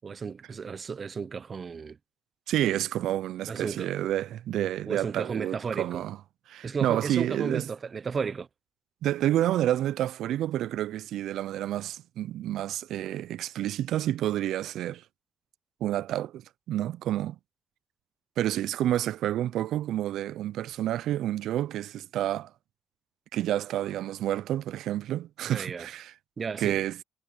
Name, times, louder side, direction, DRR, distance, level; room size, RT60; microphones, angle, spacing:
voice 1, 0.0-2.0 3.5-3.9 4.9-6.0 6.6-8.5 25.4-25.9 26.4-26.8, right 5 dB, 30° right, 0.5 m, -33 dB
voice 2, 2.5-6.2 6.5-7.6 9.0-15.0 15.8-17.4 18.4-22.5 23.3-26.1 26.6-27.0, right 12 dB, 85° right, 0.3 m, -29 dB
cardioid pair, 160°, 0 cm